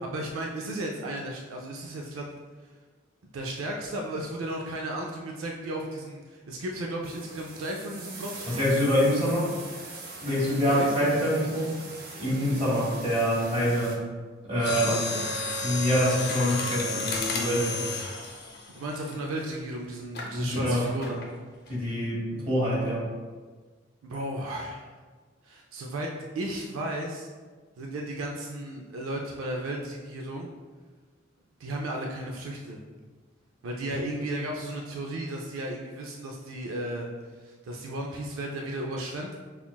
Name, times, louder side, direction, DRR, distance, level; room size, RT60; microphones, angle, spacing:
voice 1, 0.0-2.3 3.2-8.9 10.6-10.9 14.6-15.3 18.7-21.2 24.0-24.9 25.4-27.3 27.8-30.5 31.6-32.8 33.6-37.1 37.4-39.4, right 1 dB, 85° right, 0 dB, 0.4 m, -34 dB
sound 1, 7.0-14.0, right 3 dB, 50° right, 0.6 m, -42 dB
voice 2, 8.5-9.5 10.2-11.7 12.2-13.9 14.4-15.0 15.6-17.8 20.3-20.9 21.7-23.1, equal, 30° right, -8 dB, 1.5 m, -25 dB
Mechanisms, 14.6-19.6 20.1-20.4 21.0-21.3 21.7-21.8, left 3 dB, 50° left, 0.6 m, -32 dB
5.6 x 2.3 x 2.2 m, 1.4 s
head